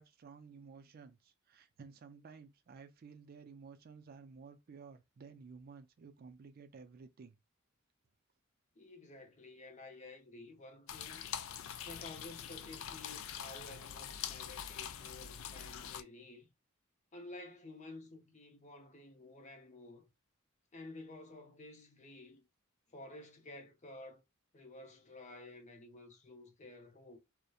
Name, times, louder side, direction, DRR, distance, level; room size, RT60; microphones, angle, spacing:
voice 1, 0.0-7.4, right 5 dB, 45° right, 0.4 m, -54 dB
voice 2, 8.8-11.3 11.8-16.5 17.1-20.1 20.7-22.5 22.9-24.2 24.5-27.2, left 2 dB, 35° left, 0.6 m, -52 dB
sound 1, 10.9-16.0, left 9 dB, 70° left, 0.3 m, -44 dB
2.8 x 2.1 x 2.3 m
head